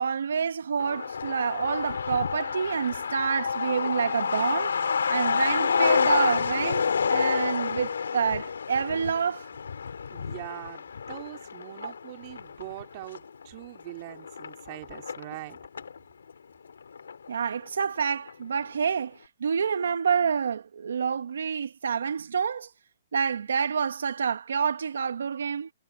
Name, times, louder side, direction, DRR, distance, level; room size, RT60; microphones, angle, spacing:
voice 1, 0.0-4.7 5.1-9.5 11.8-11.9 17.3-22.7 23.1-25.7, right 6 dB, 80° right, 1.3 m, -28 dB
Truck, 0.8-16.0 16.3-16.4 16.6-17.5 17.8-17.9 18.3-18.6, left 6 dB, 85° left, 2.5 m, -29 dB
voice 2, 10.1-15.6, right 20 dB, 45° right, 2.9 m, -42 dB
hypercardioid pair, 135°, 0 cm